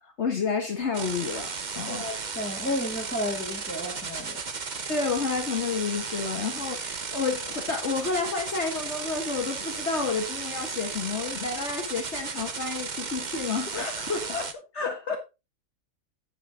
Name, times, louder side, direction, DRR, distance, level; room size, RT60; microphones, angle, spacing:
voice 1, 0.0-2.1 4.9-14.5 14.7-15.2, left 5 dB, 55° left, 1.6 m, -30 dB
sound 1, 0.9-14.5, right 5 dB, 35° right, 1.0 m, -35 dB
voice 2, 1.9-4.4, left 1 dB, 5° left, 2.9 m, -32 dB
8.2 x 7.8 x 3.7 m
omnidirectional pair, 1.4 m